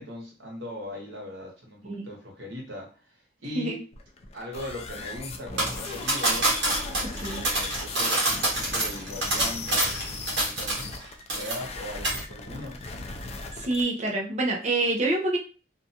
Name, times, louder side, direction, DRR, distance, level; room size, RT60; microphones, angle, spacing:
voice 1, 0.0-3.8 4.3-6.5 6.9-11.0 11.3-12.8, equal, 85° right, -1 dB, 1.1 m, -40 dB
sound 1, 3.9-13.8, left 3 dB, 35° left, 0.4 m, -38 dB
sound 2, 5.6-11.0 11.3-11.8 12.0-12.2, right 2 dB, 70° right, 1.1 m, -26 dB
voice 2, 7.0-7.5 13.5-15.4, right 2 dB, 40° right, 0 dB, 0.6 m, -27 dB
2.5 x 2.2 x 2.7 m, 0.35 s
head